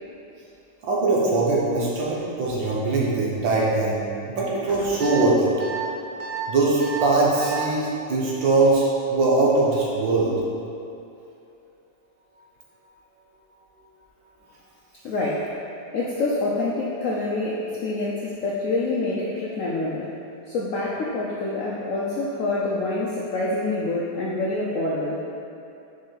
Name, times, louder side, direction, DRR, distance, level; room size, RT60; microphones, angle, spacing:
voice 1, 0.8-4.0 4.3-5.5 6.5-10.4, right 3 dB, 85° right, -5 dB, 1.8 m, -21 dB
sound 1, 5.0-5.2 5.6-5.8 6.2-6.4 6.8-7.0 7.4-7.6, right 6 dB, 55° right, 0.9 m, -32 dB
voice 2, 15.0-15.5 15.9-20.1 20.5-25.2, left 2 dB, 75° left, -5 dB, 0.7 m, -26 dB
4.8 x 4.7 x 4.5 m, 2.7 s
omnidirectional pair, 2.0 m